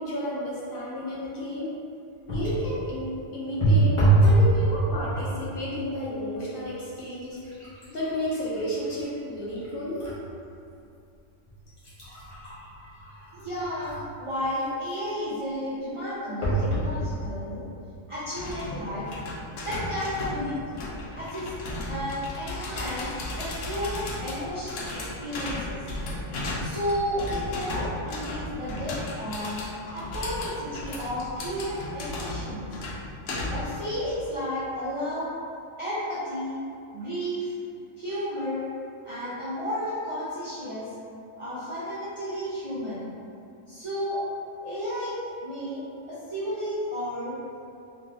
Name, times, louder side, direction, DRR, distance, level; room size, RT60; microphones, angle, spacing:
voice 1, 0.0-1.8 2.3-7.4 7.9-10.0, equal, 50° left, -7 dB, 0.8 m, -32 dB
sound 1, 2.3-2.7 3.6-4.5 4.9-5.4 6.1-6.2 6.6-10.2 10.7-10.8 11.5-14.2 16.4-16.9 17.6-17.7 18.0-18.1, right 2 dB, 35° left, 0.6 m, -26 dB
voice 2, 13.3-17.6 18.1-19.1 19.6-20.6 21.2-21.5 21.9-23.1 23.4-25.9 26.6-29.6 29.9-32.7 33.5-35.3 35.8-36.6 36.9-37.5 38.0-38.7 39.0-40.9 41.4-43.1 43.7-44.2 44.6-45.1 45.4-47.4, equal, 45° right, -11 dB, 0.4 m, -32 dB
sound 2, 18.4-33.8, left 1 dB, 80° left, 0.9 m, -35 dB
3.1 x 2.6 x 2.6 m, 2.6 s
omnidirectional pair, 1.3 m